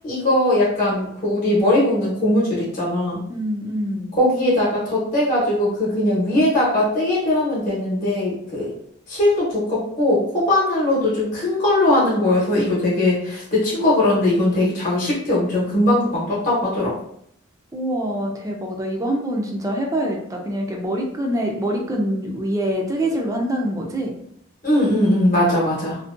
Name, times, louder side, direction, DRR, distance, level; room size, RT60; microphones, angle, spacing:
voice 1, 0.0-3.2 4.2-8.7 9.1-16.9 24.6-26.0, left 1 dB, 40° left, -7 dB, 0.9 m, -20 dB
voice 2, 3.3-4.1 17.7-24.1, right 1 dB, 15° right, 0 dB, 0.3 m, -25 dB
2.6 x 2.1 x 2.4 m, 0.69 s
head